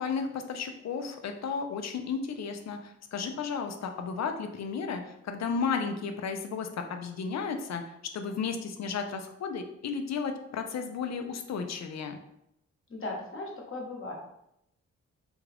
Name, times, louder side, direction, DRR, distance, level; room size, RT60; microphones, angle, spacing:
voice 1, 0.0-7.8 8.1-12.2, left 5 dB, 60° left, 6 dB, 0.6 m, -33 dB
voice 2, 12.9-14.1, left 2 dB, 45° left, -1 dB, 1.1 m, -37 dB
3.5 x 2.4 x 3.3 m, 0.80 s
cardioid pair, 60°, 30 cm